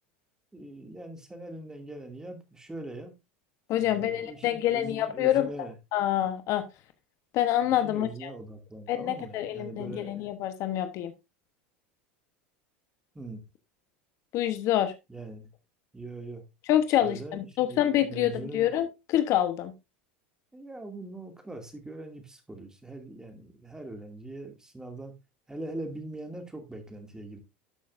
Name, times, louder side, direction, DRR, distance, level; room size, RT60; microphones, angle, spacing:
voice 1, 0.5-3.1 3.7-5.7 7.6-10.3 13.1-13.4 15.1-15.5 15.9-16.4 17.0-18.7 20.5-25.1 25.5-27.4, right 2 dB, 10° right, 2.4 m, -42 dB
voice 2, 3.7-5.5 5.9-6.6 7.3-8.3 8.9-11.1 14.3-14.9 16.7-19.7, left 12 dB, 55° left, 1.1 m, -26 dB
12.0 x 6.3 x 2.6 m
hypercardioid pair, 90°, 6 cm